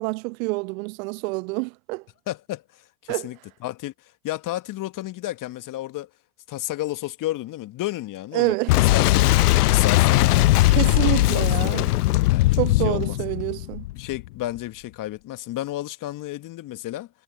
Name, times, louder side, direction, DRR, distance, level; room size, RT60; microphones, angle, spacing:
voice 1, 0.0-2.0 3.1-3.3 8.3-8.7 10.7-11.8 12.6-13.8, right 28 dB, 55° right, 0.9 m, -27 dB
voice 2, 2.3-6.1 6.5-9.3 9.6-12.0 12.3-13.2 13.9-17.1, left 15 dB, 40° left, 1.8 m, -32 dB
Boom, 8.7-14.3, left 17 dB, 65° left, 0.8 m, -19 dB
figure-of-eight pair, 75°, 49 cm